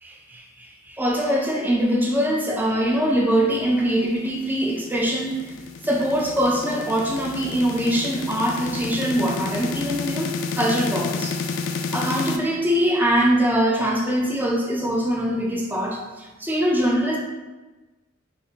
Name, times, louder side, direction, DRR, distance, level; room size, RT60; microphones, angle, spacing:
voice 1, 0.0-5.5 5.8-11.4 11.9-17.2, equal, 10° right, -1 dB, 0.4 m, -23 dB
sound 1, 4.3-12.4, left 4 dB, 65° left, 0.3 m, -30 dB
4.2 x 2.1 x 2.8 m, 1.2 s
head